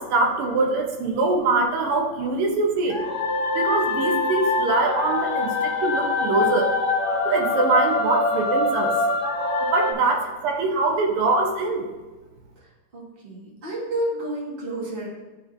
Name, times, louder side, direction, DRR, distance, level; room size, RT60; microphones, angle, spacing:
voice 1, 0.0-3.0 3.5-6.7 7.3-9.0 9.7-11.9, right 3 dB, 90° right, 2 dB, 1.8 m, -23 dB
sound 1, 2.9-9.9, left 3 dB, 60° left, 0.8 m, -24 dB
voice 2, 12.6-15.1, right 1 dB, 30° right, -5 dB, 1.7 m, -31 dB
12.0 x 4.0 x 2.6 m, 1.2 s
omnidirectional pair, 2.4 m